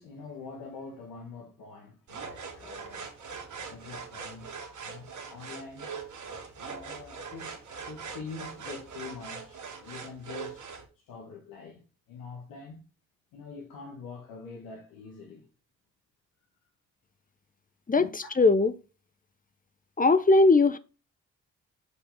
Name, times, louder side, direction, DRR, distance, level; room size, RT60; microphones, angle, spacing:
voice 1, 0.0-3.1 3.7-4.5 4.8-5.9 6.5-7.5 7.9-10.7 10.9-12.8 13.3-15.5 18.0-18.1, left 4 dB, 75° left, 1.6 m, -44 dB
sound 1, 2.1-10.8, right 5 dB, 55° right, 2.2 m, -42 dB
voice 2, 17.9-18.7 20.0-20.8, left 3 dB, 25° left, 0.8 m, -20 dB
6.7 x 4.9 x 5.7 m
hypercardioid pair, 40°, 35 cm